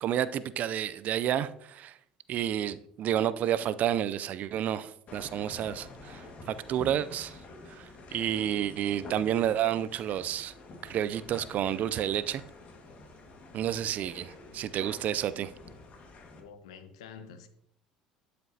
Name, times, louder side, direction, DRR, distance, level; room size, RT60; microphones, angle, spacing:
voice 1, 0.0-2.0 2.3-7.4 7.7-10.5 10.8-12.4 13.5-15.5, right 10 dB, 55° right, 0.4 m, -30 dB
sound 1, 5.1-16.4, left 3 dB, 45° left, 1.7 m, -48 dB
voice 2, 14.3-14.6 16.3-17.5, left 6 dB, 80° left, 0.8 m, -49 dB
12.0 x 5.2 x 2.8 m
hypercardioid pair, 70°, 3 cm